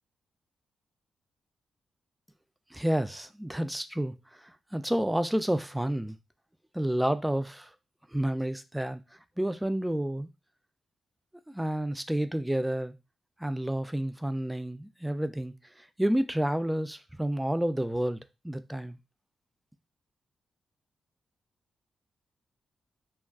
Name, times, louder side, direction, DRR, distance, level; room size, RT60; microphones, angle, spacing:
voice 1, 2.7-6.2 6.7-7.7 8.1-9.0 9.4-10.3 11.5-12.9 13.4-19.0, right 1 dB, 5° right, 0.3 m, -30 dB
2.3 x 2.2 x 3.5 m
cardioid pair, 80°, 0 cm